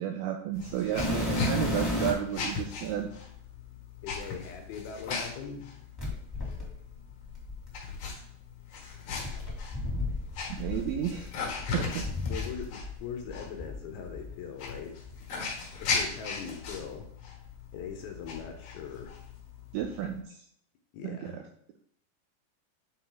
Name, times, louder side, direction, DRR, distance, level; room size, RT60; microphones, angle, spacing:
voice 1, 0.0-3.1 10.6-11.3 11.7-12.1 19.7-20.4 21.0-21.2, right 10 dB, 80° right, 4 dB, 2.2 m, -32 dB
sound 1, 0.5-20.2, left 5 dB, 55° left, 2.4 m, -39 dB
sound 2, 1.0-2.4 3.2-3.3 6.0-8.1 9.2-12.9 13.2-14.3 15.0-15.2 15.8-15.9 16.6-17.7 17.9-18.5 19.8-19.9, left 2 dB, 10° left, 1.3 m, -34 dB
voice 2, 4.0-5.6 12.3-14.9 15.8-17.1 17.7-19.1 20.9-21.4, left 6 dB, 75° left, 3 dB, 2.4 m, -41 dB
9.4 x 4.3 x 3.9 m, 0.65 s
omnidirectional pair, 4.9 m